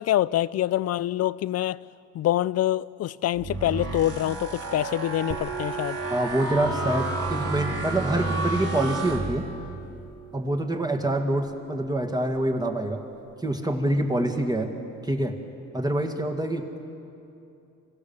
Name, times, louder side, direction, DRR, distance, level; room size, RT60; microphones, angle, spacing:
voice 1, 0.0-1.8 2.1-6.0, left 13 dB, 55° left, 0.4 m, -25 dB
sound 1, 3.3-9.8, right 2 dB, 50° right, 3.7 m, -31 dB
sound 2, 5.3-14.7, right 6 dB, 70° right, 1.6 m, -42 dB
voice 2, 6.1-9.5 10.3-13.0 13.4-14.7 15.0-15.4 15.7-16.8, right 1 dB, 15° right, 2.0 m, -26 dB
25.0 x 16.5 x 7.1 m
cardioid pair, 90°, 30 cm